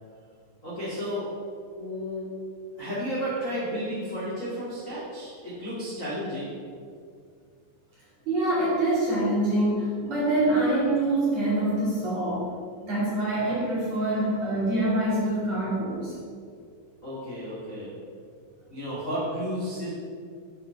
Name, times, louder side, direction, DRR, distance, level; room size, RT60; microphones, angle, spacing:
voice 1, 0.6-1.2 1.8-2.3 2.7-6.5 17.0-17.9 18.7-19.9, equal, 30° left, -9 dB, 1.5 m, -32 dB
voice 2, 8.3-12.4 12.8-16.1, right 1 dB, 40° right, -8 dB, 3.1 m, -25 dB
10.0 x 5.6 x 5.9 m, 2.2 s
omnidirectional pair, 5.6 m